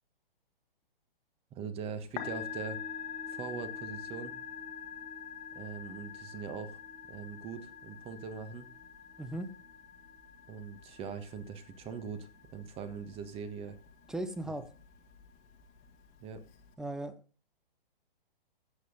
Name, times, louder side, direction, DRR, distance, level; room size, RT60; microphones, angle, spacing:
voice 1, 1.5-2.8 3.3-4.3 5.5-6.8 7.1-8.7 10.5-13.8 16.2-16.4, right 6 dB, 20° right, 1.4 m, -41 dB
Musical instrument, 2.0-16.7, left 8 dB, 25° left, 1.5 m, -46 dB
voice 2, 9.2-9.5 14.1-14.7 16.8-17.2, right 1 dB, ahead, 0.6 m, -37 dB
13.0 x 7.8 x 3.9 m
figure-of-eight pair, 130°, 29 cm